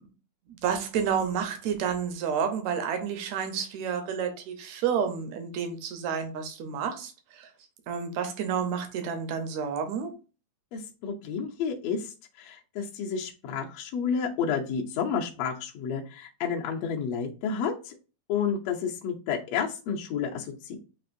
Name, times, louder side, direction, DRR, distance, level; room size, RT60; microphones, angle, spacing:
voice 1, 0.5-7.5 7.9-10.1, right 7 dB, 75° right, 1.7 m, -30 dB
voice 2, 10.7-12.1 12.4-18.0 18.3-20.8, left 6 dB, 75° left, 1.5 m, -30 dB
7.5 x 2.6 x 2.6 m
omnidirectional pair, 4.0 m